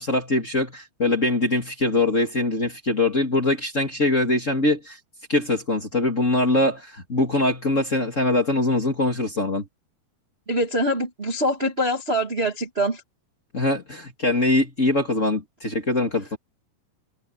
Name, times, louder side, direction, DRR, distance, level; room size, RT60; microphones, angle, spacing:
voice 1, 0.0-5.0 5.3-9.6 13.5-16.4, left 2 dB, 25° left, 1.9 m, -23 dB
voice 2, 10.5-13.0, equal, 35° right, 1.0 m, -24 dB
omnidirectional pair, 4.8 m